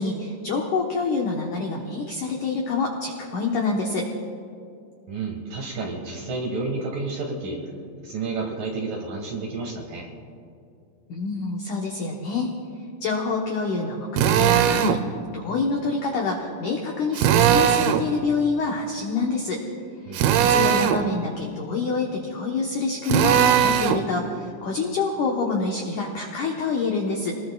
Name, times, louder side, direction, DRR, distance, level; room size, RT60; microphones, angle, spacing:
voice 1, 0.0-4.1 11.1-12.5 13.0-15.0 15.3-19.6 20.0-27.3, left 4 dB, 85° left, 0 dB, 1.7 m, -27 dB
voice 2, 5.1-7.6 8.0-10.1 20.0-20.5, right 3 dB, 60° right, 1 dB, 2.7 m, -31 dB
Drill, 14.2-15.0 17.1-18.1 20.1-21.0 23.1-24.0, right 9 dB, 85° right, 2.3 m, -19 dB
26.5 x 19.5 x 2.3 m, 2.4 s
omnidirectional pair, 5.3 m